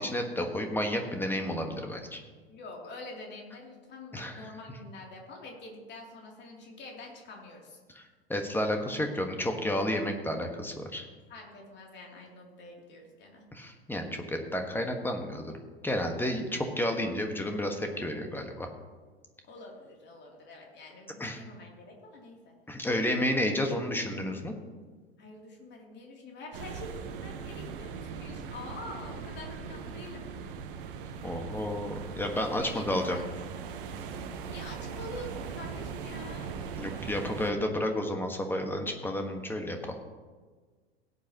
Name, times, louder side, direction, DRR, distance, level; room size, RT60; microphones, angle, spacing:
voice 1, 0.0-2.2 4.1-4.4 7.9-8.0 8.3-11.1 13.5-15.5 15.8-18.7 21.2-21.4 22.7-24.5 31.2-33.2 36.8-39.9, left 1 dB, 5° left, 4 dB, 1.5 m, -31 dB
voice 2, 2.5-7.8 11.3-13.5 19.5-22.5 23.1-23.7 25.2-30.3 32.5-33.3 34.4-36.5, left 2 dB, 35° left, 0 dB, 3.0 m, -46 dB
sound 1, 26.5-37.5, right 6 dB, 55° right, 1.2 m, -40 dB
17.0 x 8.2 x 3.0 m, 1.4 s
figure-of-eight pair, 85°, 31 cm